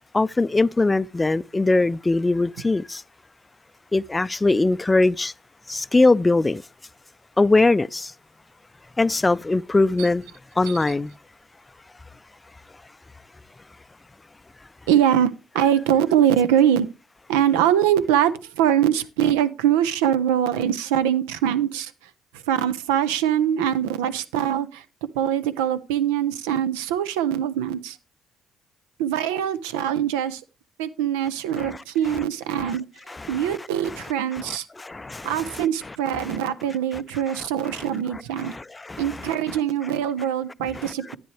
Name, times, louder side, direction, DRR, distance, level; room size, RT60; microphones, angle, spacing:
voice 1, 0.1-3.0 3.9-5.3 5.7-6.6 7.4-8.1 9.0-10.2 10.6-11.1 31.6-31.8 33.1-33.5 34.5-35.7 36.2-36.4 38.4-39.0 40.8-40.9, left 2 dB, 20° left, 0.4 m, -21 dB
voice 2, 14.9-16.9 17.3-21.9 22.5-24.8 25.1-28.0 29.0-30.4 30.8-32.8 33.3-34.7 35.2-38.5 39.0-41.2, right 10 dB, 85° right, 0.6 m, -23 dB
10.0 x 9.1 x 3.2 m
hypercardioid pair, 55°, 0 cm